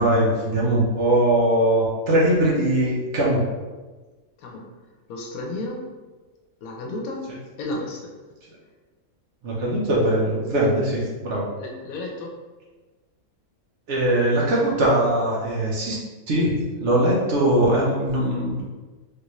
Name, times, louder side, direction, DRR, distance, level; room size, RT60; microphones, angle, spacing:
voice 1, 0.0-3.5 9.4-11.5 13.9-16.0 16.3-18.6, right 1 dB, 60° right, -4 dB, 1.0 m, -21 dB
voice 2, 4.4-4.7 5.1-5.9 6.6-7.3 7.6-8.1 11.6-12.3, left 2 dB, 75° left, 0 dB, 1.1 m, -32 dB
3.3 x 2.6 x 3.0 m, 1.3 s
omnidirectional pair, 1.5 m